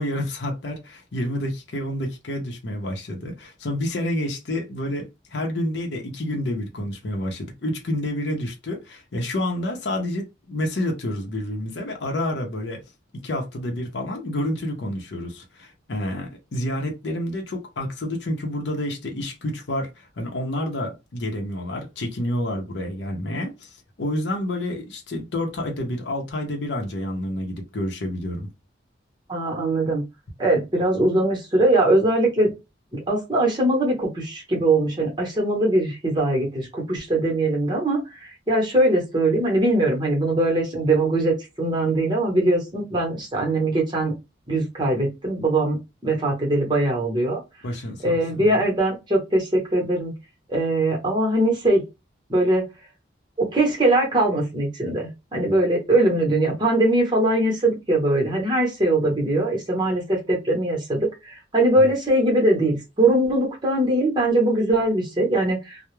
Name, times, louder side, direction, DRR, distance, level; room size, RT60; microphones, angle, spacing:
voice 1, 0.0-12.8 13.2-28.5 47.6-48.5 61.8-61.9, left 1 dB, 70° left, 0.6 m, -29 dB
voice 2, 29.3-30.0 30.4-32.5 33.1-44.1 44.5-45.8 46.0-47.4 48.0-50.1 50.5-51.8 52.3-52.7 53.4-65.9, right 1 dB, 25° right, 0.9 m, -21 dB
2.2 x 2.0 x 3.0 m
head